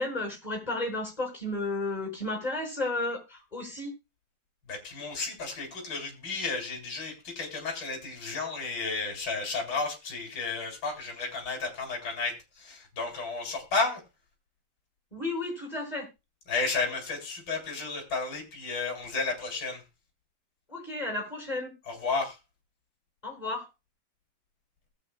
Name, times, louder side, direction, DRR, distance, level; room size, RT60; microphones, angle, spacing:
voice 1, 0.0-3.9 15.1-16.1 20.7-21.7 23.2-23.7, left 2 dB, 10° left, 0 dB, 5.6 m, -33 dB
voice 2, 4.7-14.0 16.5-19.8 21.9-22.4, left 4 dB, 35° left, 3 dB, 3.9 m, -32 dB
20.0 x 7.7 x 2.3 m, 0.26 s
omnidirectional pair, 4.0 m